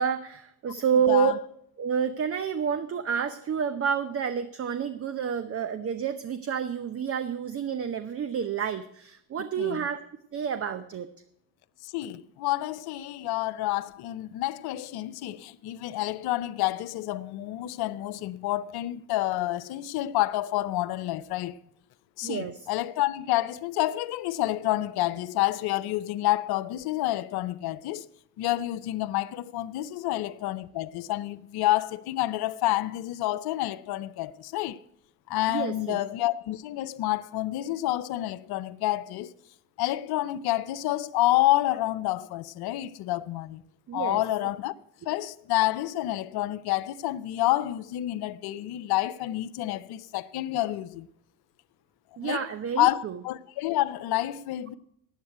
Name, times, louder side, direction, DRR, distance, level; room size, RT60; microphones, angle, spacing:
voice 1, 0.0-1.4 1.8-10.0 10.3-11.1 22.2-22.7 35.5-36.0 43.9-44.2 52.2-53.2, right 7 dB, 30° right, 0.7 m, -29 dB
voice 2, 1.1-1.4 9.6-9.9 11.8-21.6 22.2-28.1 28.4-34.8 35.3-39.3 39.8-43.6 43.9-44.7 45.1-51.1 52.2-52.5 52.8-54.7, left 16 dB, 50° left, 0.7 m, -28 dB
9.5 x 8.1 x 9.1 m
hypercardioid pair, 60°, 47 cm